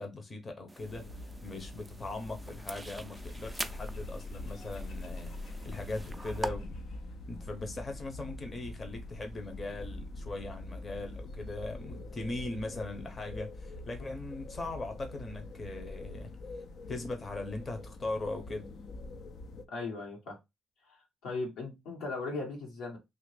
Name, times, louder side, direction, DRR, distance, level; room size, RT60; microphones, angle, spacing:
voice 1, 0.0-6.8 7.3-16.6 16.9-18.7, left 2 dB, 30° left, 0.7 m, -40 dB
sound 1, 0.7-6.5, right 2 dB, 15° right, 0.4 m, -44 dB
sound 2, 0.8-19.7, left 2 dB, 65° left, 0.4 m, -44 dB
voice 2, 19.7-20.4 20.8-23.0, left 3 dB, 85° left, 1.3 m, -38 dB
2.8 x 2.5 x 3.2 m
cardioid pair, 90°, 0 cm